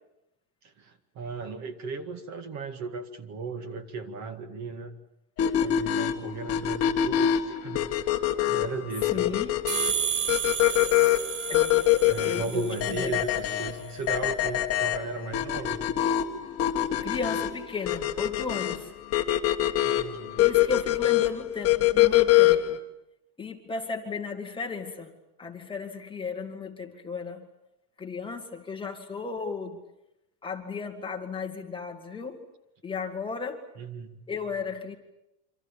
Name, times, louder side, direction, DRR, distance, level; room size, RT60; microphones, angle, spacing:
voice 1, 0.6-4.9 5.6-7.9 8.4-9.4 12.0-15.9 19.8-20.4 33.8-34.2, right 4 dB, 35° right, 9 dB, 2.1 m, -36 dB
sound 1, 5.4-22.8, left 13 dB, 30° left, 1.8 m, -25 dB
voice 2, 9.1-9.6 11.5-11.9 12.2-13.2 16.9-18.9 20.4-22.8 23.4-25.1 25.4-27.5 28.0-29.8 30.4-32.4 32.8-33.6 34.3-35.0, left 5 dB, 10° left, 2 dB, 1.9 m, -34 dB
sound 2, 9.7-13.2, right 9 dB, 70° right, 6.0 m, -32 dB
27.0 x 26.0 x 7.2 m, 0.88 s
supercardioid pair, 160°, 48 cm